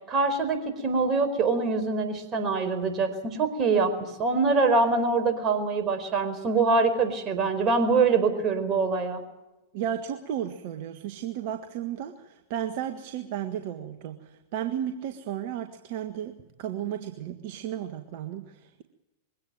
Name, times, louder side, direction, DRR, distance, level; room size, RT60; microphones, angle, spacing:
voice 1, 0.1-9.2, right 4 dB, 30° right, 7 dB, 4.8 m, -24 dB
voice 2, 9.7-18.8, right 10 dB, 55° right, 7 dB, 1.6 m, -34 dB
22.5 x 17.5 x 9.0 m, 1.0 s
figure-of-eight pair, 100°, 0 cm